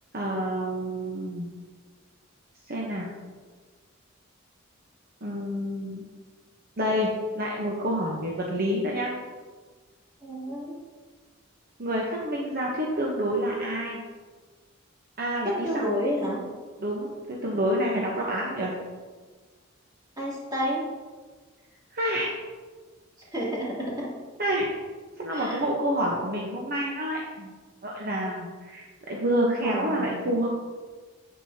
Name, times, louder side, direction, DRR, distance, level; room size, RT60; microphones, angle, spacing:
voice 1, 0.1-1.5 2.7-3.1 5.2-6.1 6.8-9.1 11.8-14.0 15.2-15.8 16.8-18.7 21.9-22.3 24.4-24.7 25.2-27.5 27.8-30.5, equal, 45° right, -2 dB, 1.0 m, -28 dB
voice 2, 10.2-10.8 15.4-16.4 20.2-20.8 23.3-24.1 25.3-25.6 26.0-26.1 29.6-30.2, equal, 20° right, -6 dB, 2.7 m, -30 dB
9.1 x 8.2 x 2.8 m, 1.5 s
head